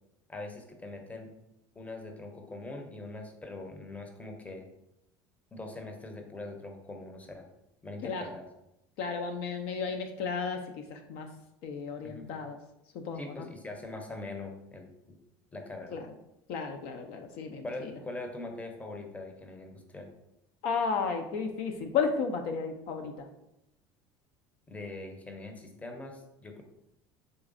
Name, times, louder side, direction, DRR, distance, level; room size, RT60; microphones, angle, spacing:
voice 1, 0.3-1.3 1.8-4.7 5.5-7.5 7.8-8.5 12.0-12.3 13.1-15.2 15.5-15.9 17.6-20.1 24.7-26.6, left 2 dB, 15° left, 4 dB, 0.6 m, -42 dB
voice 2, 9.0-11.3 11.6-12.6 12.9-13.5 15.9-16.1 16.5-17.9 20.6-23.3, left 5 dB, 65° left, 5 dB, 0.4 m, -33 dB
3.9 x 3.2 x 2.5 m, 0.86 s
hypercardioid pair, 85°, 11 cm